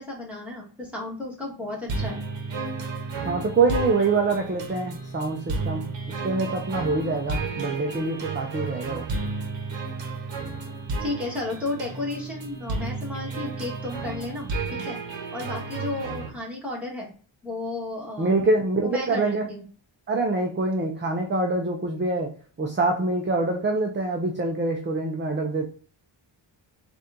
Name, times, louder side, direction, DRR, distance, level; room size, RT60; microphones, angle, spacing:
voice 1, 0.0-2.2 11.0-15.0 15.3-17.1 17.4-18.5 18.8-19.6, left 2 dB, 5° right, -4 dB, 1.5 m, -33 dB
sound 1, 1.9-16.3, right 3 dB, 65° right, 1.0 m, -32 dB
voice 2, 3.2-5.9 6.2-9.0 18.2-19.4 20.1-22.3 22.6-25.6, right 3 dB, 25° right, 1 dB, 0.6 m, -25 dB
4.1 x 2.5 x 3.6 m, 0.41 s
wide cardioid pair, 130°, 47 cm